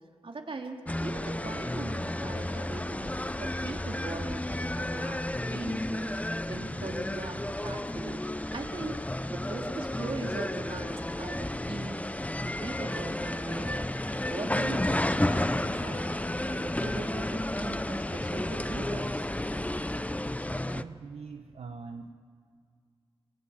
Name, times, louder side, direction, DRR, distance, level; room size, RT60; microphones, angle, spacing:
voice 1, 0.2-3.1 3.4-8.2 8.5-9.0 9.3-12.0 12.4-16.2 16.5-19.3, right 3 dB, 60° right, 2 dB, 3.2 m, -40 dB
sound 1, 0.9-20.8, left 1 dB, 15° left, 0.9 m, -32 dB
voice 2, 20.7-22.1, right 4 dB, 85° right, 5 dB, 1.1 m, -43 dB
26.5 x 17.5 x 8.7 m, 2.1 s
cardioid pair, 50°, 10 cm